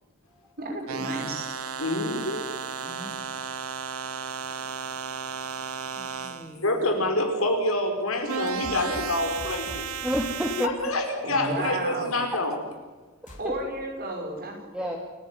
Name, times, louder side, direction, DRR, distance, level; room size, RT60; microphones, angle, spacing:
voice 1, 0.6-1.5 11.2-12.2 13.4-15.0, right 2 dB, 45° right, 1 dB, 5.9 m, -32 dB
sound 1, 0.9-6.5 8.3-10.7, right 6 dB, 85° right, 1.0 m, -34 dB
voice 2, 1.8-2.5 2.9-3.0 4.6-4.7 6.2-9.9 10.6-12.5, left 1 dB, 70° left, 3 dB, 4.8 m, -27 dB
voice 3, 2.8-3.4 6.0-6.7 10.0-10.7 13.2-13.4 14.7-15.0, equal, 5° right, 0 dB, 2.3 m, -31 dB
sound 2, 8.5-9.1 9.4-9.8 10.1-10.3 13.3-13.4, equal, 35° left, 3.8 m, -41 dB
29.0 x 11.0 x 9.2 m, 1.3 s
head